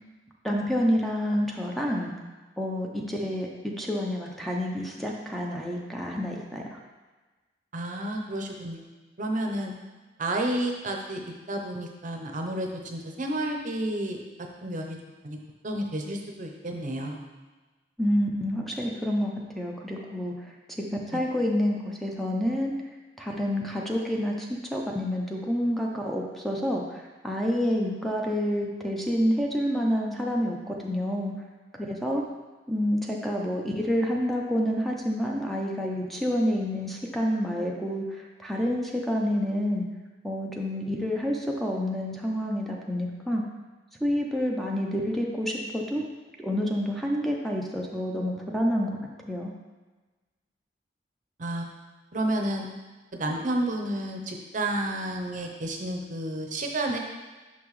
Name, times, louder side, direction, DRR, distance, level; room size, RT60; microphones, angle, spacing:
voice 1, 0.4-2.1 2.6-6.8 18.0-20.3 20.7-22.7 23.2-31.3 31.9-32.2 32.7-38.0 38.4-39.8 40.2-43.4 44.0-46.1 46.4-48.9 49.3-49.5, equal, ahead, -1 dB, 0.6 m, -28 dB
voice 2, 7.7-8.8 9.2-9.7 10.2-11.2 11.5-15.0 15.2-15.4 15.6-17.2 21.1-21.2 51.4-51.7 52.1-52.7 53.1-57.0, right 1 dB, 45° right, 2 dB, 0.7 m, -31 dB
5.9 x 5.7 x 3.1 m, 1.2 s
head